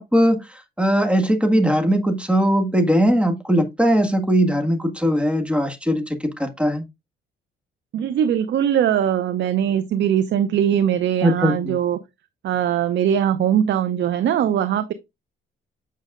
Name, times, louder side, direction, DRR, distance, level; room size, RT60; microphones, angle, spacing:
voice 1, 0.0-6.8 11.2-11.7, equal, 5° right, 1.6 m, -20 dB
voice 2, 7.9-12.0 12.4-14.9, right 9 dB, 65° right, 0.7 m, -21 dB
8.4 x 6.2 x 2.4 m
cardioid pair, 90°, 20 cm